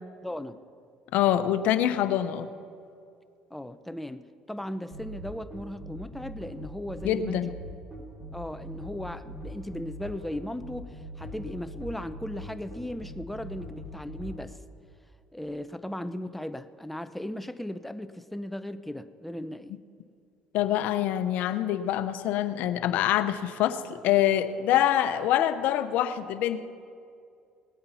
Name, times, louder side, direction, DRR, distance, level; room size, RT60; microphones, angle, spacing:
voice 1, 0.2-0.6 3.5-7.4 8.3-14.6 15.3-19.8, left 1 dB, 5° left, 11 dB, 0.6 m, -37 dB
voice 2, 1.1-2.5 7.0-7.5 20.5-26.6, left 11 dB, 70° left, 11 dB, 0.8 m, -25 dB
sound 1, 4.9-14.3, right 1 dB, 30° right, 3.8 m, -41 dB
19.0 x 8.8 x 5.6 m, 2.4 s
supercardioid pair, 85°, 3 cm